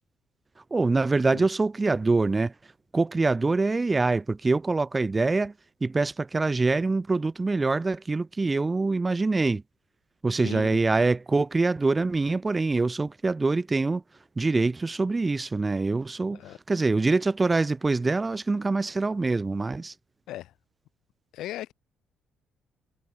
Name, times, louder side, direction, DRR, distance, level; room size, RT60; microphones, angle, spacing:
voice 1, 0.7-2.5 2.9-5.5 5.8-9.6 10.2-14.0 14.4-16.4 16.7-19.9, right 3 dB, 15° right, 0.6 m, -24 dB
voice 2, 10.4-10.8 16.3-16.6 20.3-20.5 21.3-21.7, left 14 dB, 75° left, 6.7 m, -37 dB
cardioid pair, 155°, 0 cm